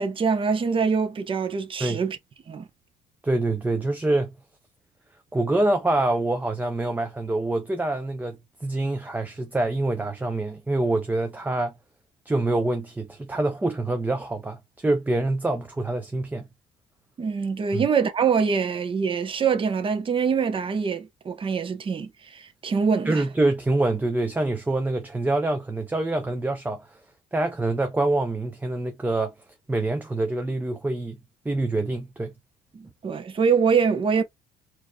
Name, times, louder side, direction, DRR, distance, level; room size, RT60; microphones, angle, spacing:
voice 1, 0.0-2.2 2.5-2.7 17.2-23.2 32.7-34.2, right 6 dB, 30° right, 0.8 m, -24 dB
voice 2, 3.2-4.3 5.3-11.7 12.3-16.4 17.7-17.8 23.1-26.8 27.3-29.3 29.7-31.2 31.5-32.3, right 2 dB, 10° right, 0.5 m, -25 dB
4.5 x 2.7 x 2.2 m
cardioid pair, 110°, 17 cm